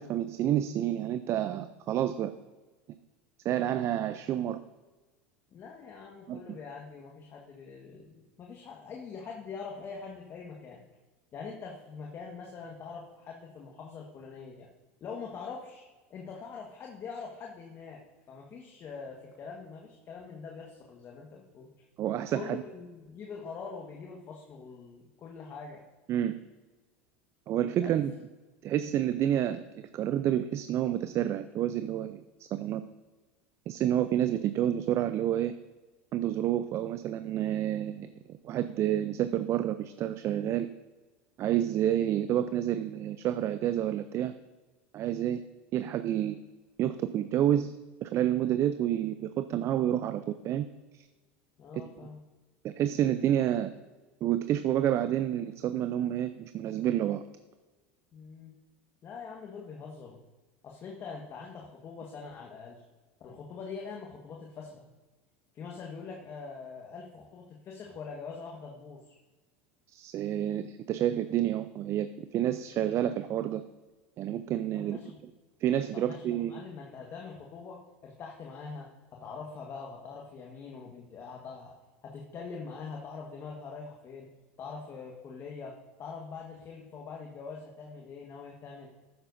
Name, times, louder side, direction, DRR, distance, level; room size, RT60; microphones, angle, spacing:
voice 1, 0.0-2.3 3.4-4.6 6.3-6.4 22.0-22.6 26.1-26.3 27.5-28.1 28.6-29.6 29.9-32.8 33.7-35.5 36.1-38.1 38.4-40.7 41.4-44.3 44.9-45.4 45.7-46.4 46.8-47.7 48.0-50.7 52.6-53.7 54.2-57.2 69.9-73.6 74.2-75.0 75.6-76.6, right 11 dB, 45° right, 11 dB, 0.5 m, -29 dB
voice 2, 5.5-10.8 11.3-14.7 15.0-18.0 18.3-21.7 22.3-25.8 27.8-27.9 51.6-52.2 58.1-58.5 59.0-60.2 60.6-62.8 63.2-64.8 65.5-69.2 74.7-75.2 75.9-81.7 82.0-84.3 84.6-88.9, left 5 dB, 40° left, 0 dB, 1.5 m, -43 dB
12.5 x 9.5 x 2.7 m, 1.2 s
hypercardioid pair, 95°, 7 cm